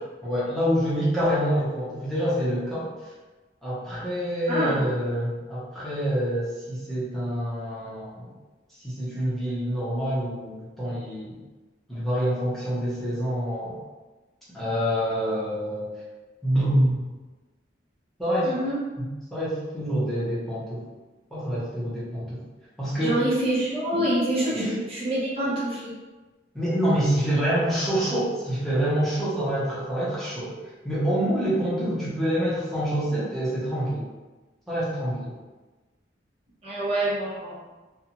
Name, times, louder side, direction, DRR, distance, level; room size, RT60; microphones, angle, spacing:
voice 1, 0.2-2.9 3.6-8.3 8.8-11.3 11.9-13.8 14.5-15.9 16.4-17.0 18.2-18.5 19.3-20.8 21.3-22.4 22.8-23.2 23.9-24.7 26.5-30.6 30.8-34.0 34.7-35.3, equal, ahead, -11 dB, 0.8 m, -26 dB
voice 2, 18.4-18.8 23.0-25.8 36.6-37.6, right 1 dB, 30° right, -8 dB, 0.6 m, -26 dB
2.6 x 2.3 x 2.9 m, 1.2 s
head